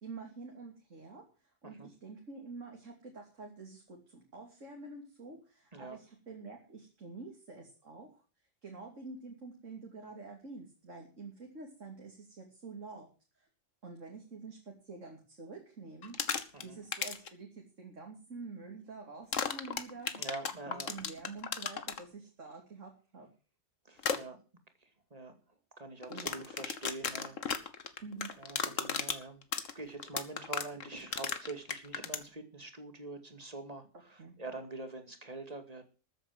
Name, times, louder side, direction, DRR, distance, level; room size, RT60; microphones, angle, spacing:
voice 1, 0.0-8.2 8.6-13.5 13.8-16.2 16.6-20.1 20.6-23.3 26.1-26.4 28.0-28.3 34.2-34.3, right 3 dB, 85° right, 1 dB, 3.2 m, -48 dB
sound 1, 16.0-16.6 16.9-17.3 19.3-22.0 24.0-24.2 26.0-32.2, left 6 dB, 85° left, 1.7 m, -34 dB
voice 2, 20.1-20.9 23.8-24.4 24.8-25.4 25.8-27.4 28.4-29.4 29.7-35.9, right 2 dB, 30° right, 7 dB, 2.4 m, -45 dB
14.0 x 9.2 x 7.5 m, 0.36 s
omnidirectional pair, 1.3 m